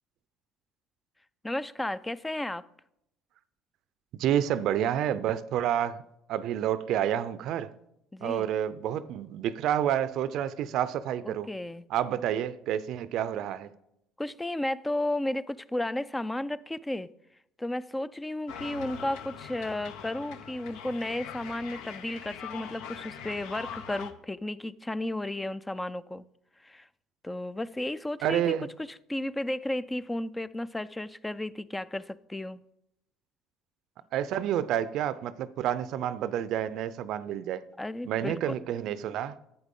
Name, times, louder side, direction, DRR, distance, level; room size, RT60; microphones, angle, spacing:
voice 1, 1.4-2.6 8.1-8.5 11.2-11.8 14.2-17.1 17.6-26.2 26.6-26.9 27.2-28.4 29.1-32.6 37.8-38.5, left 1 dB, 10° left, 0.3 m, -33 dB
voice 2, 4.2-6.0 6.3-7.7 8.2-11.5 11.9-13.7 28.2-28.7 34.1-37.6 38.1-39.4, right 10 dB, 65° right, 0.5 m, -29 dB
sound 1, 18.5-24.1, left 7 dB, 75° left, 0.7 m, -42 dB
11.0 x 8.1 x 3.7 m
supercardioid pair, 80°, 0 cm